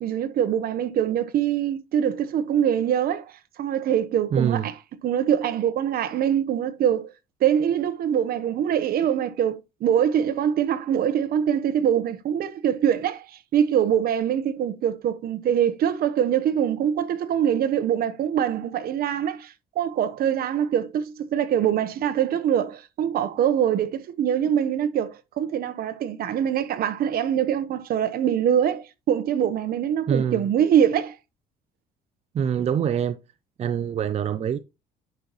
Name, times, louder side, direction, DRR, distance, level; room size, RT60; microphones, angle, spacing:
voice 1, 0.0-3.2 3.6-4.7 5.0-7.1 7.4-13.2 13.5-31.1, right 9 dB, 60° right, 1.1 m, -23 dB
voice 2, 4.3-4.7 30.1-30.5 32.3-33.2 33.6-34.6, right 8 dB, 40° right, 0.6 m, -24 dB
10.5 x 5.5 x 3.0 m
cardioid pair, 110°, 17 cm